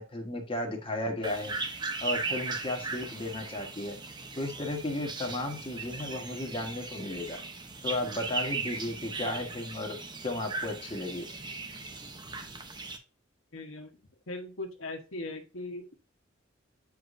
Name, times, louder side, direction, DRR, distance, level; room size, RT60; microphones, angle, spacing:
voice 1, 0.0-1.5 2.0-4.0 4.4-7.4 7.8-10.0 10.2-11.4, left 1 dB, 25° left, 1 dB, 1.3 m, -34 dB
sound 1, 1.2-13.0, right 3 dB, 20° right, 0.8 m, -38 dB
voice 2, 13.5-13.9 14.3-15.9, left 2 dB, 90° left, 4 dB, 1.3 m, -39 dB
7.9 x 4.9 x 2.6 m, 0.33 s
head